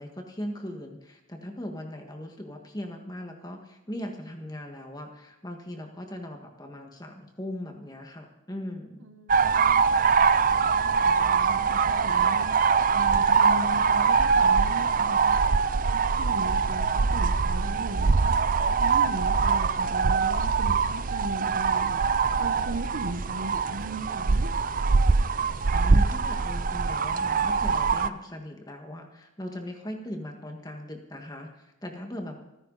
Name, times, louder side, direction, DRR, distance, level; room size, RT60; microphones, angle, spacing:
voice 1, 0.0-9.1 25.7-32.4, left 1 dB, 20° left, 3 dB, 1.7 m, -39 dB
voice 2, 9.0-10.0 10.5-12.5 12.9-15.4 15.9-22.0 22.4-24.5, right 1 dB, 75° right, 9 dB, 1.0 m, -38 dB
sound 1, 9.3-28.1, right 5 dB, 40° right, 0.5 m, -23 dB
27.0 x 10.0 x 4.1 m, 0.89 s
head